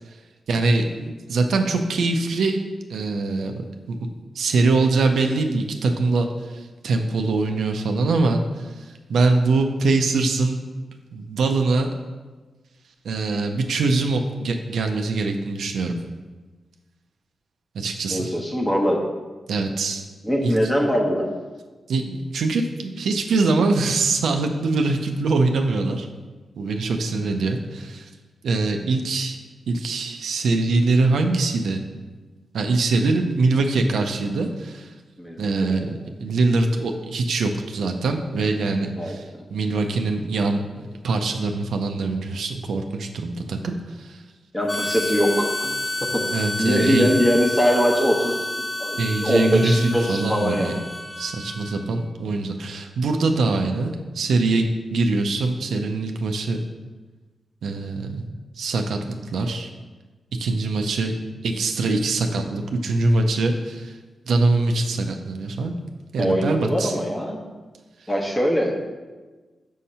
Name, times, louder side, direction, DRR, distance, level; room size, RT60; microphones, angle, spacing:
voice 1, 0.5-2.6 2.9-3.5 3.9-4.0 4.3-10.6 11.1-11.9 13.0-16.0 17.7-18.3 19.5-20.1 20.4-20.6 21.9-26.1 26.6-28.1 28.4-29.4 29.7-31.8 32.5-34.9 35.4-35.9 36.2-39.2 39.5-44.2 46.3-47.1 49.0-50.8 51.2-56.6 57.6-58.2 58.6-59.0 59.3-59.7 60.4-61.1 61.4-64.0 64.3-65.7 66.1-66.9, right 3 dB, 80° right, 4 dB, 0.5 m, -23 dB
voice 2, 18.1-19.0 20.2-21.3 35.2-36.1 39.0-39.5 44.5-45.8 46.1-46.3 46.6-50.7 66.2-67.4 68.1-68.8, equal, 15° left, 1 dB, 1.0 m, -22 dB
Harmonica, 44.7-52.0, left 1 dB, 40° left, 0.9 m, -30 dB
6.3 x 2.8 x 5.5 m, 1.3 s
cardioid pair, 75°, 0 cm